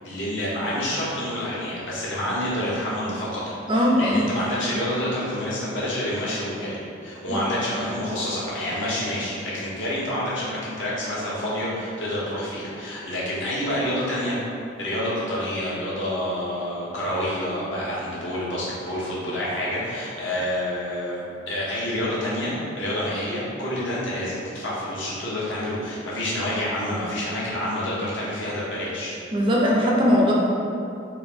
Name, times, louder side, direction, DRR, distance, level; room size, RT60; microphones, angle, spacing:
voice 1, 0.0-14.4 14.8-29.2, left 1 dB, 75° left, -8 dB, 1.0 m, -28 dB
voice 2, 3.7-4.2 7.3-7.4 29.3-30.3, equal, 25° right, -3 dB, 0.4 m, -19 dB
3.5 x 2.6 x 3.4 m, 2.6 s
head